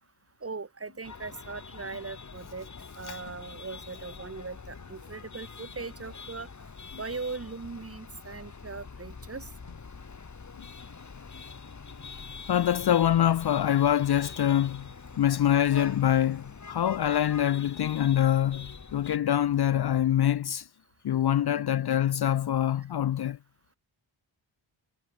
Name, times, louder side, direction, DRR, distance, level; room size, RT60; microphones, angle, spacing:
voice 1, 0.4-2.7 2.9-6.5 6.9-9.5 17.1-17.2, right 4 dB, 30° right, 1.1 m, -39 dB
sound 1, 0.9-2.6 3.3-3.9 5.5-6.4 8.4-9.2 9.7-10.8 12.4-13.8 16.2-18.7 19.5-20.5, left 5 dB, 70° left, 6.7 m, -61 dB
sound 2, 1.0-19.2, left 5 dB, 35° left, 1.4 m, -44 dB
voice 2, 12.5-14.9 15.2-20.6 21.0-23.4, left 11 dB, 55° left, 0.5 m, -25 dB
wide cardioid pair, 75°, 49 cm